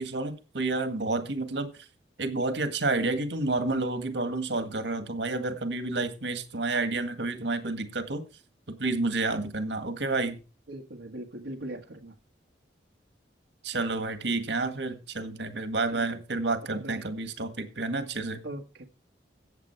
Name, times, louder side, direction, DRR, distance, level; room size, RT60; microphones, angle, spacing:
voice 1, 0.0-1.7 2.2-8.2 8.7-10.4 13.6-18.4, right 3 dB, 75° right, 1.9 m, -30 dB
voice 2, 10.7-12.1 15.9-16.2 16.7-17.1 18.4-18.8, right 1 dB, 90° right, 1.6 m, -40 dB
15.0 x 8.3 x 4.6 m
head